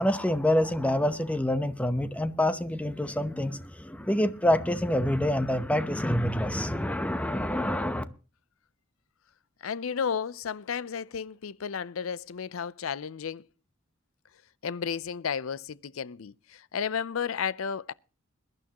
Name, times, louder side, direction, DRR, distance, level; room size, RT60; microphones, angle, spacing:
voice 1, 0.0-8.0, left 1 dB, 5° left, 0.9 m, -27 dB
voice 2, 9.6-13.4 14.6-17.9, left 7 dB, 90° left, 0.5 m, -33 dB
21.5 x 12.0 x 2.9 m
head